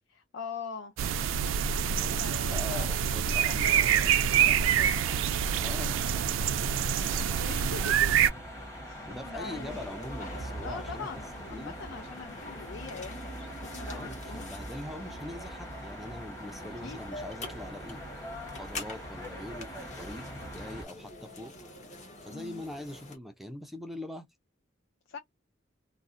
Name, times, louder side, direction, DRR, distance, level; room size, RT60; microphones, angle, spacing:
voice 1, 0.1-0.9 2.2-5.1 7.2-8.1 8.8-9.8 10.6-14.5 16.8-17.0 22.3-22.6 25.1-25.2, left 5 dB, 75° left, 0.4 m, -43 dB
sound 1, 1.0-8.3, right 8 dB, 80° right, 0.3 m, -26 dB
voice 2, 2.0-4.6 5.6-6.0 9.1-11.2 11.5-11.7 13.9-18.0 18.5-21.5 22.2-24.3, left 1 dB, ahead, 0.3 m, -42 dB
sound 2, 4.3-20.8, equal, 15° left, 1.0 m, -43 dB
sound 3, 9.4-23.2, left 2 dB, 40° left, 0.8 m, -46 dB
2.5 x 2.0 x 2.4 m
head